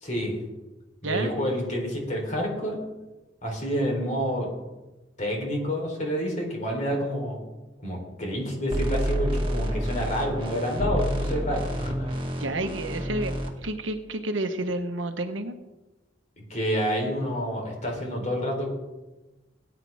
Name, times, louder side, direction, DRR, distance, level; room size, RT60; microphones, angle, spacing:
voice 1, 0.0-0.4 1.0-2.8 3.4-4.5 5.2-7.4 7.8-12.2 16.4-18.7, equal, 40° left, 0 dB, 3.8 m, -28 dB
sound 1, 8.7-13.5, equal, 25° right, 1.9 m, -29 dB
voice 2, 12.4-13.3 13.6-15.5, right 2 dB, 85° right, 7 dB, 1.2 m, -30 dB
19.0 x 10.0 x 3.6 m, 1.1 s
head